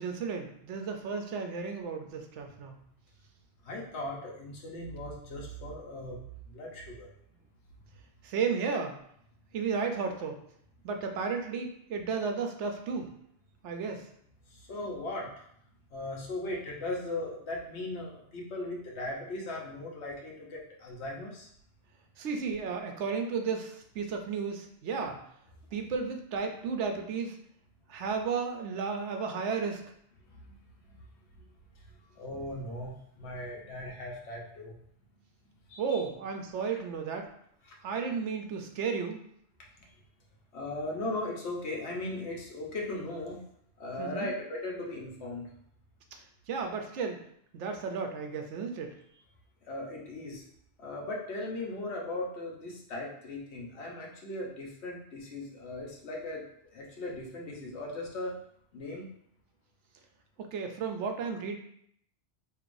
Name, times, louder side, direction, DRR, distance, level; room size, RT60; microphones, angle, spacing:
voice 1, 0.0-2.8 8.2-9.0 9.5-10.4 10.8-13.1 13.6-14.0 22.2-25.2 25.7-27.4 27.9-29.8 35.8-37.3 37.8-39.2 44.0-44.3 46.5-47.2 47.5-48.9 60.4-61.6, right 5 dB, 85° right, 4 dB, 0.9 m, -33 dB
voice 2, 3.6-7.1 14.4-15.5 15.9-21.5 30.3-30.5 30.9-31.0 32.1-34.7 35.7-36.0 36.7-36.8 37.6-37.7 39.8-39.9 40.5-43.4 43.8-45.5 49.7-50.4 50.8-56.4 56.7-58.3 58.7-59.1, left 2 dB, 70° left, -2 dB, 1.2 m, -38 dB
4.7 x 3.0 x 2.5 m, 0.69 s
omnidirectional pair, 1.2 m